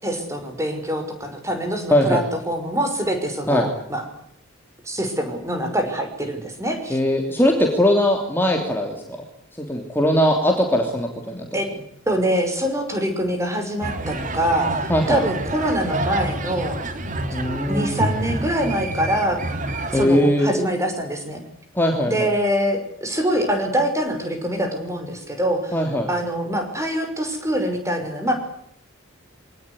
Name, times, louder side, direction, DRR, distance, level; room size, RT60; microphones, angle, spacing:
voice 1, 0.0-4.0 4.8-7.0 11.5-11.7 12.1-16.8 17.7-19.4 19.9-21.4 22.0-25.7 26.1-28.3, equal, 15° right, 5 dB, 6.0 m, -24 dB
voice 2, 1.9-2.2 3.5-3.7 6.9-8.9 9.6-11.5 14.9-15.2 17.3-17.9 19.9-20.5 21.7-22.3 25.7-26.1, equal, 10° left, 2 dB, 3.1 m, -20 dB
sound 1, 13.8-20.1, right 1 dB, 40° right, 2.8 m, -28 dB
25.0 x 19.0 x 9.9 m, 0.68 s
head